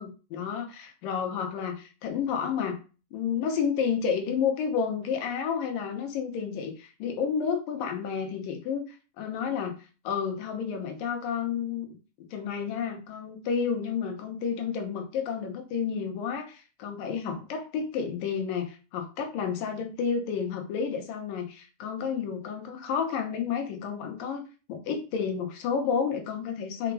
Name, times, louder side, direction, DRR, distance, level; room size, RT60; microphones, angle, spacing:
voice 1, 0.0-2.8 3.1-9.8 10.0-12.0 12.3-24.4 24.7-26.9, left 6 dB, 75° left, 4 dB, 2.8 m, -31 dB
5.7 x 5.0 x 4.8 m, 0.33 s
omnidirectional pair, 4.2 m